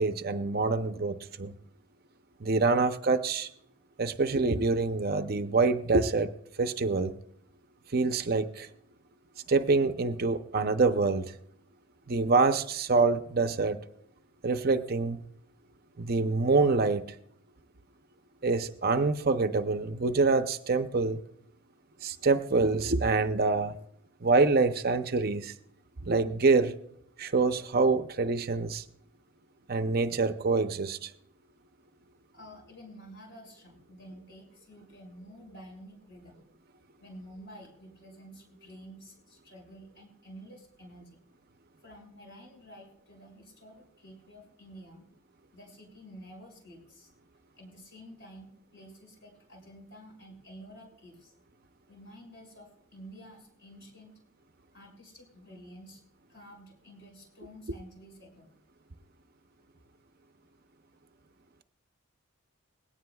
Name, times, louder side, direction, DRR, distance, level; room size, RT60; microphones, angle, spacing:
voice 1, 0.0-1.5 2.4-3.5 4.0-6.3 6.6-7.1 7.9-8.7 9.5-11.3 12.1-13.8 14.4-15.2 16.0-17.1 18.4-21.2 22.0-23.7 24.2-25.5 26.1-26.8 27.2-28.8 29.7-31.1, right 3 dB, 45° right, 9 dB, 0.6 m, -26 dB
voice 2, 32.3-36.4 37.0-41.2 41.8-45.1 45.5-47.1 47.5-51.3 51.9-54.1 54.7-56.0 56.3-58.5, equal, 55° left, 0 dB, 6.1 m, -50 dB
20.0 x 17.5 x 2.3 m, 0.75 s
head